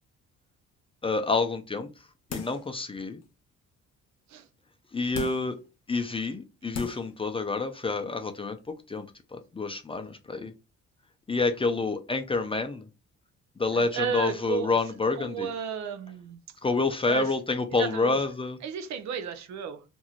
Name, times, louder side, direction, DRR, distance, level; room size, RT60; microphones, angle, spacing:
voice 1, 1.0-1.9 2.3-3.2 4.9-5.6 5.9-9.1 9.3-10.5 11.3-12.9 13.6-15.5 16.6-18.6, left 3 dB, 20° left, 0.4 m, -28 dB
sound 1, 2.3-2.7 3.2-3.3 5.1-5.6 6.3-6.4 6.7-7.1 7.5-7.6, left 4 dB, 55° left, 0.7 m, -37 dB
voice 2, 13.7-14.8 15.2-16.4 17.1-17.3 17.7-18.2 18.6-19.8, right 7 dB, 65° right, 0.6 m, -33 dB
2.9 x 2.6 x 2.4 m
cardioid pair, 90°, 30 cm